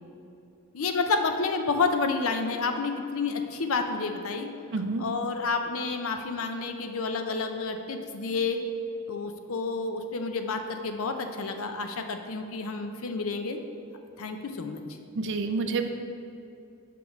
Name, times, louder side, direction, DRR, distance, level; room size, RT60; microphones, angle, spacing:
voice 1, 0.7-4.5 5.0-8.6 9.1-13.6 14.2-14.8, left 4 dB, 65° left, 6 dB, 0.5 m, -29 dB
voice 2, 4.7-5.0 15.1-15.9, right 3 dB, 55° right, 7 dB, 0.4 m, -28 dB
5.9 x 4.6 x 5.2 m, 2.7 s
head